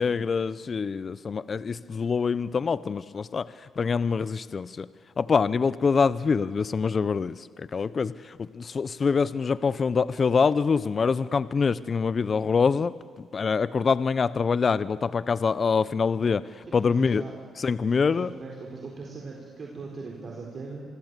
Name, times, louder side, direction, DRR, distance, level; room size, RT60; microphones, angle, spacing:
voice 1, 0.0-4.9 5.2-12.9 13.3-17.2 17.6-18.3, left 5 dB, 40° left, 17 dB, 0.6 m, -25 dB
voice 2, 16.7-17.3 17.8-20.8, right 3 dB, 45° right, -1 dB, 4.2 m, -40 dB
25.5 x 24.5 x 8.2 m, 2.1 s
cardioid pair, 90°, 0 cm